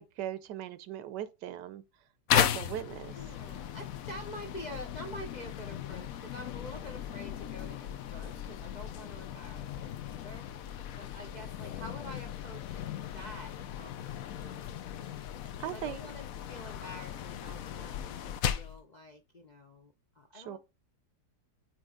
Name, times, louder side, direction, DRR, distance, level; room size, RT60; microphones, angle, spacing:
voice 1, 0.0-1.8 2.3-3.2 15.6-16.1 20.3-20.6, right 11 dB, 85° right, 1.3 m, -39 dB
sound 1, 2.3-18.8, left 10 dB, 65° left, 0.9 m, -36 dB
voice 2, 3.1-10.7 11.0-14.8 15.7-20.6, equal, 45° left, 0.6 m, -47 dB
9.0 x 3.1 x 3.7 m
omnidirectional pair, 1.8 m